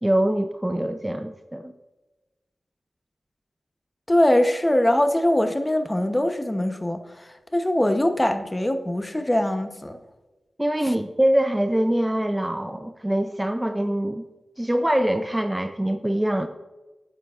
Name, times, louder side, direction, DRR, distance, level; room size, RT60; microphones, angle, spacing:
voice 1, 0.0-1.7 10.6-14.2 14.6-16.5, right 1 dB, 10° right, 8 dB, 0.4 m, -24 dB
voice 2, 4.1-10.0, left 1 dB, 15° left, 7 dB, 0.8 m, -22 dB
9.1 x 8.8 x 2.4 m, 1.1 s
cardioid pair, 65°, 0 cm